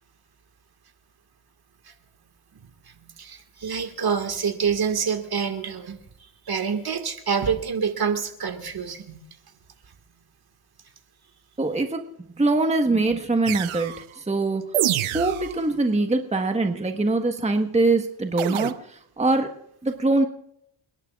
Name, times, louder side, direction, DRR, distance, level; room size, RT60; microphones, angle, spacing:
voice 1, 2.9-9.2 15.1-15.2, right 6 dB, 50° right, 6 dB, 1.9 m, -27 dB
voice 2, 11.6-12.1 12.4-14.6 15.1-19.6 19.8-20.3, right 2 dB, 15° right, 5 dB, 1.3 m, -23 dB
sound 1, 13.5-14.0 14.7-15.6 18.4-18.7, right 12 dB, 75° right, 0.9 m, -26 dB
29.5 x 11.0 x 2.4 m, 0.72 s
cardioid pair, 80°, 48 cm